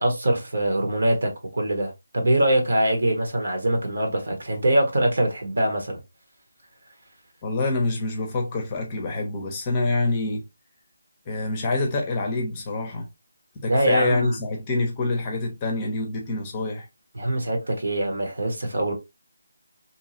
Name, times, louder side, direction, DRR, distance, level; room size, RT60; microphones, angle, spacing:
voice 1, 0.0-6.0 13.7-14.4 17.1-18.9, right 1 dB, 70° right, 1.3 m, -23 dB
voice 2, 7.4-10.5 11.3-13.1 13.5-16.9, left 2 dB, 20° left, 0.6 m, -26 dB
2.7 x 2.3 x 2.7 m
figure-of-eight pair, 165°, 0 cm